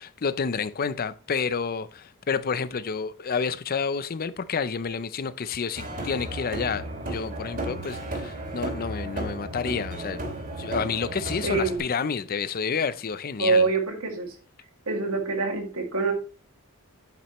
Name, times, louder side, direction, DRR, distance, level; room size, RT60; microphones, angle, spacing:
voice 1, 0.0-10.2 10.6-13.7, left 5 dB, 45° left, 0.5 m, -29 dB
sound 1, 5.7-11.8, right 1 dB, 40° right, 2.7 m, -34 dB
voice 2, 11.4-11.8 13.4-14.4 14.9-16.1, right 3 dB, 80° right, 2.3 m, -25 dB
9.0 x 8.3 x 3.1 m
head